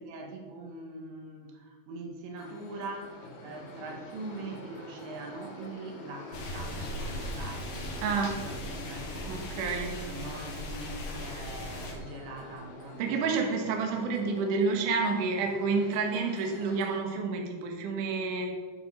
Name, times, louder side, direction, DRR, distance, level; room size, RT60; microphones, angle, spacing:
voice 1, 0.0-9.4 10.0-13.3, right 2 dB, 75° right, 3 dB, 3.7 m, -43 dB
sound 1, 2.4-17.0, left 2 dB, 85° left, 4.6 m, -47 dB
sound 2, 6.3-11.9, left 1 dB, 55° left, 3.1 m, -38 dB
voice 2, 8.0-8.3 9.3-9.9 13.0-18.5, right 4 dB, 60° right, 1 dB, 2.4 m, -29 dB
11.5 x 7.9 x 5.6 m, 1.5 s
omnidirectional pair, 5.3 m